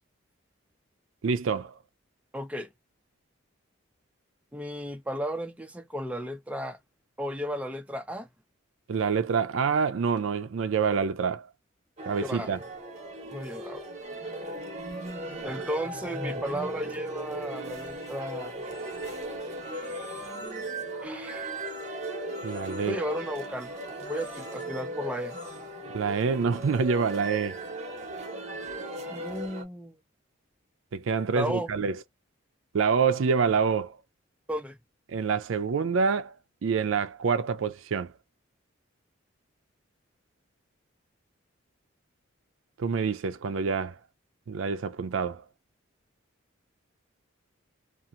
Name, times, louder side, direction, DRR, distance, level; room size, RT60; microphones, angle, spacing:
voice 1, 1.2-1.7 8.9-11.5 12.1-12.6 22.4-23.0 25.9-27.6 30.9-31.9 32.7-34.0 35.1-36.3 36.6-38.1 42.8-44.0 44.5-45.4, right 5 dB, 75° right, 0.4 m, -26 dB
voice 2, 2.3-2.7 4.5-6.8 7.2-8.3 12.2-12.6 13.3-13.8 15.4-18.6 21.0-21.5 22.8-23.7 24.0-25.4 29.1-29.9 31.3-31.7 34.5-34.8, equal, 5° right, 0.4 m, -34 dB
sound 1, 12.0-29.6, right 1 dB, 35° right, 0.8 m, -37 dB
2.8 x 2.4 x 2.4 m
head